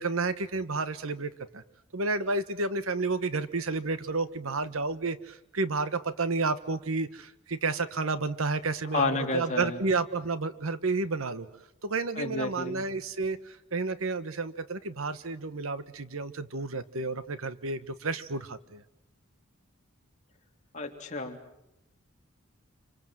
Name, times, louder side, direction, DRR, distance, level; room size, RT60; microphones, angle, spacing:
voice 1, 0.0-1.6 1.9-11.5 11.8-18.8, right 3 dB, 80° right, 13 dB, 1.2 m, -31 dB
voice 2, 8.9-9.8 12.2-12.8 20.7-21.4, left 3 dB, 35° left, 2 dB, 3.3 m, -31 dB
28.5 x 25.5 x 7.7 m, 0.86 s
head